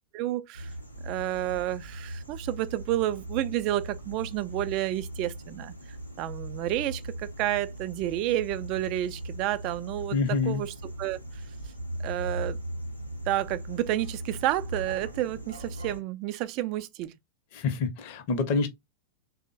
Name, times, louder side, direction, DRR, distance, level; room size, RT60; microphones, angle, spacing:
voice 1, 0.1-0.7 1.0-5.7 6.2-11.2 12.0-12.6 13.3-17.1, right 14 dB, 40° right, 0.3 m, -30 dB
sound 1, 0.5-16.0, right 1 dB, 90° left, 0.6 m, -39 dB
voice 2, 10.1-10.6 17.5-18.7, left 4 dB, 45° left, 0.7 m, -27 dB
3.5 x 2.0 x 2.5 m
figure-of-eight pair, 90°, 0 cm